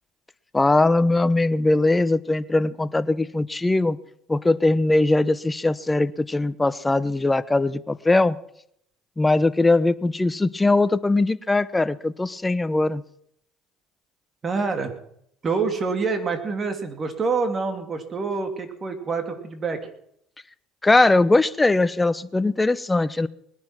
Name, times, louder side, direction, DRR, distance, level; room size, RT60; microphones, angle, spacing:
voice 1, 0.5-4.0 4.3-8.4 9.2-13.0 20.8-23.3, left 2 dB, 15° left, 15 dB, 0.9 m, -20 dB
voice 2, 14.4-14.9 15.4-19.8, right 4 dB, 35° right, 7 dB, 2.9 m, -26 dB
20.5 x 10.5 x 5.9 m, 0.71 s
supercardioid pair, 90°, 0 cm